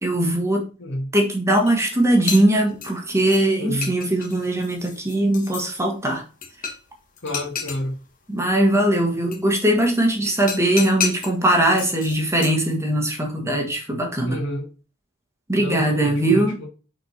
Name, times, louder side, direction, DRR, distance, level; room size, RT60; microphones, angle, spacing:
voice 1, 0.0-0.6 1.1-6.2 8.3-14.4 15.5-16.6, right 1 dB, 15° right, 1.3 m, -20 dB
voice 2, 0.8-1.1 3.6-3.9 7.2-8.0 14.2-14.7 15.6-16.7, left 1 dB, 55° left, 2.1 m, -29 dB
sound 1, 1.7-1.8 2.1-3.4 3.8-5.7 6.4-6.9 7.2-7.8 9.3-9.4 10.3-11.3 11.8-12.6, left 6 dB, 40° left, 1.3 m, -31 dB
6.2 x 4.3 x 4.3 m
head